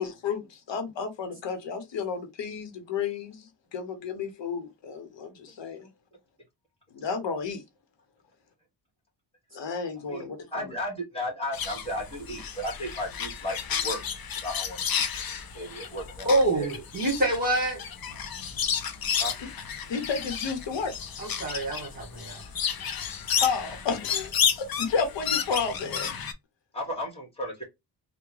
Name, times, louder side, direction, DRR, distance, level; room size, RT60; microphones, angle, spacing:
voice 1, 0.0-5.8 6.9-7.6 9.5-10.7 19.4-19.5 19.9-20.9 23.4-26.1, left 5 dB, 90° left, 1.0 m, -32 dB
voice 2, 10.1-14.0 14.4-15.0 15.5-16.3 16.5-16.7 19.2-19.3 26.7-27.6, left 1 dB, 15° left, 1.8 m, -34 dB
sound 1, 11.5-26.3, left 8 dB, 55° left, 0.6 m, -32 dB
voice 3, 16.3-17.8 21.2-22.4, right 1 dB, 20° right, 1.9 m, -26 dB
3.5 x 2.3 x 3.1 m
wide cardioid pair, 140°, 42 cm